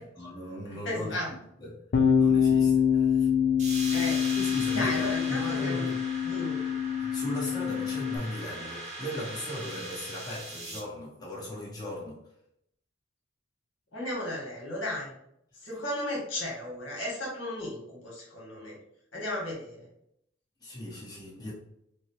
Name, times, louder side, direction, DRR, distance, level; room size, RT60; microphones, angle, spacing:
voice 1, 0.0-1.2 1.6-1.9 2.1-3.3 4.4-6.0 7.0-12.2 20.6-21.5, left 1 dB, 20° left, -5 dB, 1.0 m, -38 dB
voice 2, 0.7-1.3 3.9-4.2 4.7-5.8 6.2-6.6 13.9-15.1 15.6-18.8 19.1-19.9, left 1 dB, 70° left, -4 dB, 1.4 m, -34 dB
Bass guitar, 1.9-8.2, left 8 dB, 55° left, 0.4 m, -25 dB
sound 1, 3.6-10.8, right 1 dB, 40° right, 0.9 m, -40 dB
4.4 x 2.1 x 2.8 m, 0.76 s
head